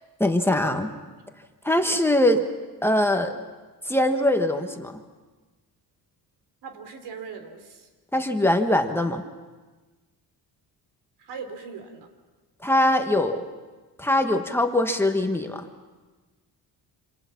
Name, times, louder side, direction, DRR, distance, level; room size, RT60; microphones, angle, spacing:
voice 1, 0.2-0.9 1.6-2.4 2.8-3.3 3.9-5.0 8.1-9.2 12.6-13.4 14.0-15.7, left 1 dB, 5° left, 4 dB, 1.3 m, -22 dB
voice 2, 6.6-7.9 11.2-12.1, right 5 dB, 80° right, 7 dB, 3.7 m, -39 dB
27.5 x 26.5 x 5.9 m, 1.3 s
cardioid pair, 155°, 39 cm